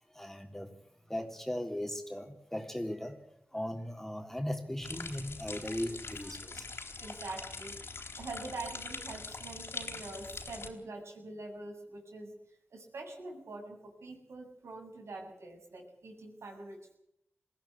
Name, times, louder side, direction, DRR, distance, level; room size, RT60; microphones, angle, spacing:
voice 1, 0.1-0.7 1.1-3.2 3.5-6.7, left 1 dB, 5° left, 5 dB, 3.5 m, -38 dB
sound 1, 4.8-10.7, left 4 dB, 65° left, 3.8 m, -43 dB
voice 2, 7.0-12.4 12.7-16.9, right 2 dB, 85° right, 1 dB, 7.1 m, -45 dB
21.5 x 15.5 x 8.6 m, 0.76 s
cardioid pair, 50°, 4 cm